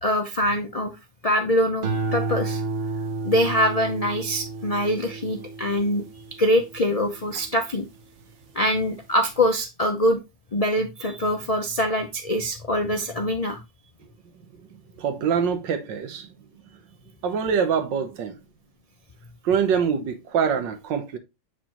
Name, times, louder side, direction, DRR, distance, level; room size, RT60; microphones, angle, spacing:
voice 1, 0.0-0.9 1.2-2.6 3.2-6.0 6.4-7.9 8.5-10.2 10.5-13.6, equal, 70° left, 0.3 m, -24 dB
sound 1, 1.8-8.3 8.8-9.3, right 3 dB, 55° right, 0.9 m, -32 dB
voice 2, 15.0-16.3 17.2-18.4 19.4-21.2, right 7 dB, 90° right, 1.6 m, -24 dB
7.4 x 5.0 x 2.9 m
omnidirectional pair, 1.9 m